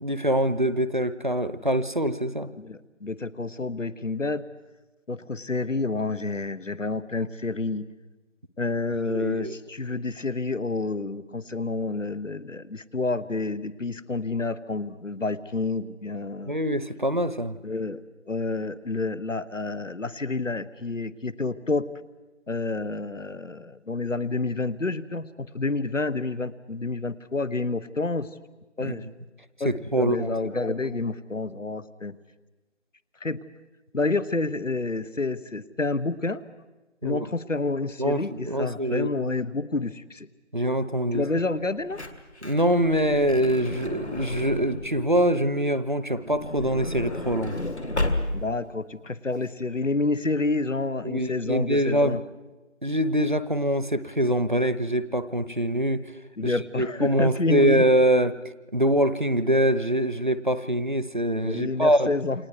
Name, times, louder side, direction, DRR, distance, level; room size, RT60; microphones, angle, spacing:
voice 1, 0.0-2.5 9.1-9.5 16.4-17.6 28.8-29.0 29.6-30.4 37.0-37.3 38.0-39.1 40.5-41.2 42.4-47.6 51.0-52.2 52.8-56.0 56.4-58.4 58.7-62.1, equal, 40° right, 13 dB, 0.8 m, -24 dB
voice 2, 2.6-4.4 5.1-7.8 8.6-16.5 17.6-18.0 18.3-21.9 22.5-28.3 28.8-29.1 29.6-32.1 33.2-33.4 33.9-36.4 37.0-40.3 41.1-42.0 48.3-52.2 56.4-57.9 61.4-62.5, left 3 dB, 85° left, 17 dB, 1.2 m, -29 dB
Truck / Door, 41.6-45.1 46.1-48.7 49.3-49.4 49.6-49.8, left 1 dB, 60° left, 2.1 m, -32 dB
28.5 x 25.5 x 4.8 m, 1.1 s
figure-of-eight pair, 170°, 37 cm